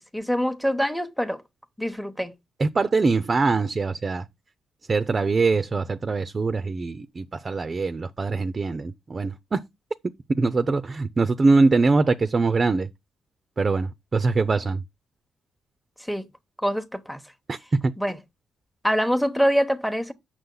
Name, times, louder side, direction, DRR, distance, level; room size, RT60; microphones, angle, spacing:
voice 1, 0.0-1.4 1.8-2.3 16.1-16.2 16.6-17.2 18.0-18.2 18.8-20.1, equal, ahead, 1.0 m, -24 dB
voice 2, 2.6-4.2 4.9-9.6 10.4-12.9 13.6-14.8 17.5-17.6, right 3 dB, 35° right, 0.6 m, -23 dB
8.0 x 6.3 x 3.9 m
supercardioid pair, 60°, 0 cm